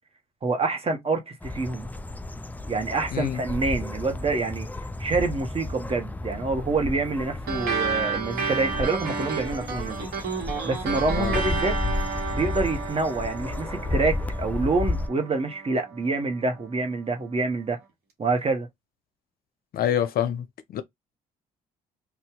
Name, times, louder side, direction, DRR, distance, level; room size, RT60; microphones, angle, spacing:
voice 1, 0.4-1.9 2.7-4.7 5.0-10.1 10.6-11.8 12.3-17.8 18.2-18.7, right 3 dB, 35° right, 1.1 m, -27 dB
sound 1, 1.4-15.1, left 2 dB, 10° left, 0.4 m, -32 dB
sound 2, 7.5-16.3, right 5 dB, 65° right, 1.1 m, -32 dB
voice 2, 19.7-20.5 20.7-20.8, left 10 dB, 60° left, 0.5 m, -26 dB
2.7 x 2.3 x 3.6 m
hypercardioid pair, 55°, 18 cm